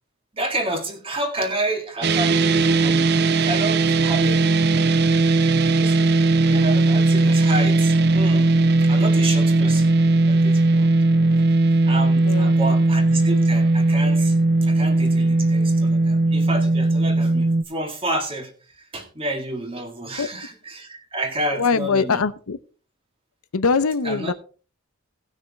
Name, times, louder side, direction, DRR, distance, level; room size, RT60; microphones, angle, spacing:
voice 1, 0.3-4.9 5.7-6.2 6.5-8.5 8.8-10.9 11.3-11.4 11.9-14.4 14.6-22.2 24.0-24.3, right 1 dB, 25° right, 4 dB, 1.9 m, -30 dB
sound 1, 2.0-17.6, right 2 dB, 50° right, 0.5 m, -18 dB
voice 2, 12.2-12.8 20.2-20.3 21.5-22.6 23.5-24.3, left 5 dB, 85° left, 14 dB, 0.7 m, -22 dB
18.0 x 6.4 x 3.5 m, 0.37 s
head